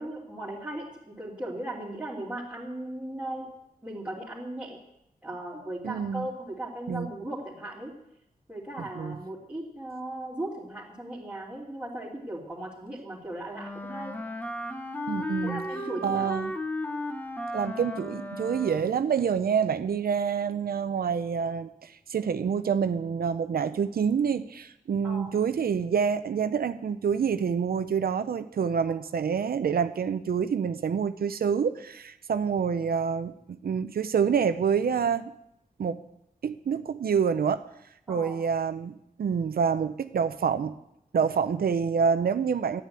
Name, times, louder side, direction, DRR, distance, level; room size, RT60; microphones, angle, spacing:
voice 1, 0.0-3.5 3.8-4.8 5.2-7.9 8.5-14.2 15.4-16.4 25.0-25.3 38.1-38.4, right 1 dB, 10° right, -8 dB, 2.9 m, -37 dB
voice 2, 5.8-6.3 6.9-7.1 9.0-9.2 15.1-15.6 16.0-16.5 17.5-35.3 35.8-36.0 36.4-37.6 38.1-40.7 41.1-42.8, right 6 dB, 85° right, 11 dB, 0.7 m, -27 dB
Wind instrument woodwind instrument, 13.6-19.1, left 1 dB, 10° left, 1.1 m, -35 dB
12.5 x 10.0 x 8.1 m, 0.79 s
wide cardioid pair, 140°, 15 cm